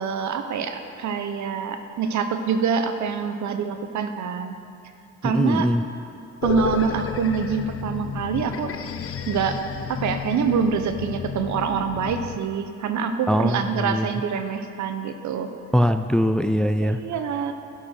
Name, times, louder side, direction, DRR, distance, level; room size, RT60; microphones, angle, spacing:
voice 1, 0.0-4.6 5.2-5.7 6.4-8.7 9.3-9.6 9.9-15.5 16.8-17.5, right 6 dB, 70° right, 8 dB, 1.0 m, -25 dB
voice 2, 5.2-5.8 13.3-14.1 15.7-17.0, equal, 5° left, 9 dB, 0.4 m, -21 dB
sound 1, 6.4-12.4, left 7 dB, 45° left, 0.7 m, -31 dB
11.5 x 11.5 x 4.5 m, 2.5 s
cardioid pair, 90°, 30 cm